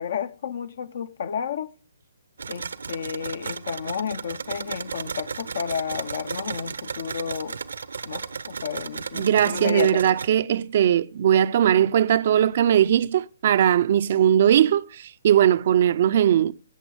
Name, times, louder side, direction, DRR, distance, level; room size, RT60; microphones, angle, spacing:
voice 1, 0.0-1.7 2.5-7.6 8.0-10.2, left 7 dB, 50° left, 0.7 m, -32 dB
sound 1, 2.4-10.3, right 5 dB, 65° right, 0.9 m, -34 dB
voice 2, 9.1-16.5, right 10 dB, 45° right, 0.6 m, -19 dB
17.5 x 8.3 x 5.1 m
figure-of-eight pair, 135°, 0 cm